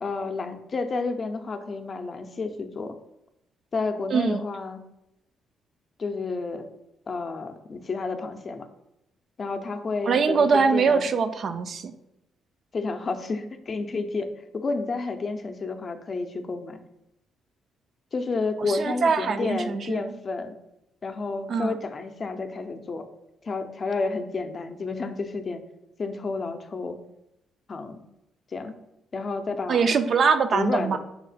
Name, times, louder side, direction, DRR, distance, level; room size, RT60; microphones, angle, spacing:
voice 1, 0.0-3.0 3.7-4.8 6.0-6.7 7.1-8.7 9.4-11.1 12.7-16.8 18.1-20.6 21.0-23.0 23.4-25.6 26.0-27.0 27.7-28.0 28.5-28.7 29.1-29.9 30.5-31.0, left 3 dB, 40° left, 7 dB, 0.5 m, -30 dB
voice 2, 4.1-4.4 10.0-11.9 18.6-20.1 21.5-21.8 29.7-31.0, right 5 dB, 55° right, 9 dB, 0.3 m, -23 dB
5.5 x 2.1 x 4.0 m, 0.85 s
cardioid pair, 90°, 0 cm